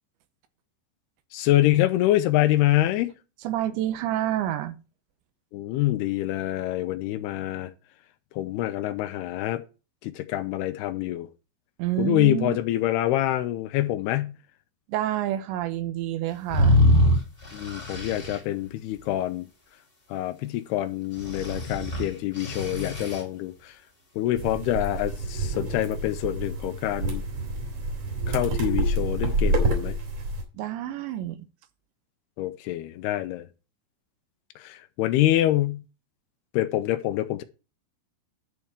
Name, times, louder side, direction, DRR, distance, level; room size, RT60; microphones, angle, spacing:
voice 1, 1.3-3.1 5.5-7.7 8.4-9.6 10.0-11.3 12.0-14.4 17.5-19.5 20.1-23.8 24.2-27.2 28.3-30.0 32.4-33.5 34.6-35.8 36.5-37.4, left 14 dB, 80° left, 2.3 m, -26 dB
voice 2, 3.4-4.8 11.8-12.6 14.9-16.8 30.5-31.5, right 12 dB, 80° right, 3.0 m, -28 dB
sound 1, 16.5-18.4 21.2-23.2, left 1 dB, 25° left, 1.3 m, -23 dB
sound 2, 24.3-30.4, right 2 dB, 45° right, 3.4 m, -28 dB
11.0 x 4.5 x 7.3 m
omnidirectional pair, 5.4 m